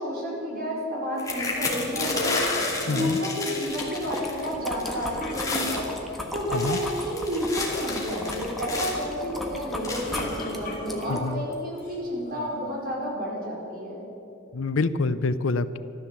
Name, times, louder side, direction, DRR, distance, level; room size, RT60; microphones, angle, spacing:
voice 1, 0.0-2.4 2.9-5.9 6.3-14.1, equal, 50° right, -4 dB, 4.6 m, -30 dB
sound 1, 1.2-4.5 4.8-5.0 5.3-5.9 6.4-9.1 9.8-10.4 11.1-11.2 11.5-11.8, left 3 dB, 15° left, 2.6 m, -31 dB
sound 2, 2.0-3.1 4.8-6.1 6.8-7.2 7.5-7.9 9.7-11.2 11.8-12.6, left 2 dB, 40° left, 4.0 m, -37 dB
voice 2, 2.9-3.2 6.5-6.8 11.1-11.4 14.5-15.8, left 3 dB, 70° left, 14 dB, 0.6 m, -26 dB
sound 3, 3.6-11.3, equal, ahead, 1.5 m, -37 dB
14.0 x 13.0 x 7.4 m, 2.9 s
head